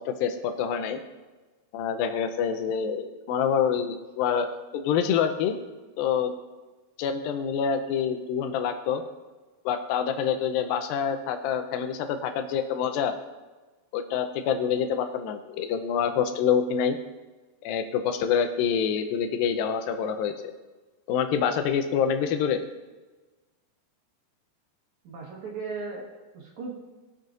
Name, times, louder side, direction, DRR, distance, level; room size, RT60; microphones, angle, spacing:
voice 1, 0.1-1.0 1.7-5.6 6.0-6.3 7.0-9.0 9.7-13.1 13.9-17.0 17.6-20.5 21.1-22.6, left 7 dB, 80° left, 7 dB, 2.4 m, -26 dB
voice 2, 25.0-26.7, right 4 dB, 60° right, -2 dB, 2.4 m, -37 dB
19.5 x 6.6 x 2.5 m, 1.3 s
omnidirectional pair, 4.3 m